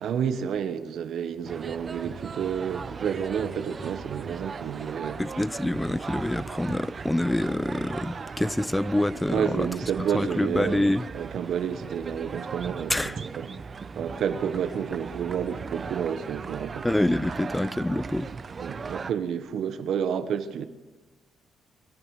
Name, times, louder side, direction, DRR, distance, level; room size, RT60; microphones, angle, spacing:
voice 1, 0.0-5.2 9.3-10.9 11.1-13.5 14.0-16.9 18.6-20.6, right 8 dB, 70° right, 1.1 m, -30 dB
sound 1, 1.4-19.1, right 5 dB, 40° right, 0.7 m, -38 dB
voice 2, 5.2-9.7 10.1-11.1 12.9-13.2 16.8-18.3, left 1 dB, 10° left, 0.4 m, -26 dB
23.5 x 11.0 x 4.8 m
cardioid pair, 90°, 0 cm